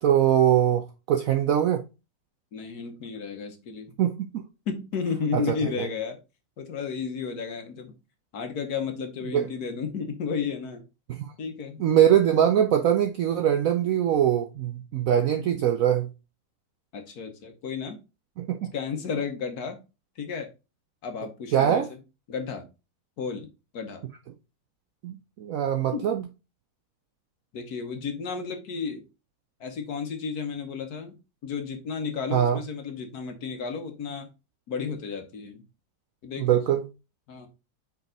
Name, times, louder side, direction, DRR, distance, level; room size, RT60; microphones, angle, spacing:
voice 1, 0.0-1.9 4.0-4.5 5.3-5.9 9.3-9.4 11.1-11.3 11.8-16.1 18.4-18.7 21.5-21.9 25.0-26.2 32.3-32.6 36.4-36.8, right 10 dB, 70° right, 0.8 m, -22 dB
voice 2, 2.5-3.9 4.7-6.2 6.6-8.0 8.3-10.8 11.4-11.8 16.9-18.0 18.7-19.8 20.2-20.5 21.0-22.0 22.3-22.6 23.2-23.5 23.7-24.0 25.9-26.1 27.5-29.0 29.6-31.2 31.4-34.3 34.7-35.6 36.2-36.6 37.3-37.5, left 5 dB, 60° left, 1.4 m, -33 dB
5.4 x 4.6 x 3.8 m
omnidirectional pair, 2.0 m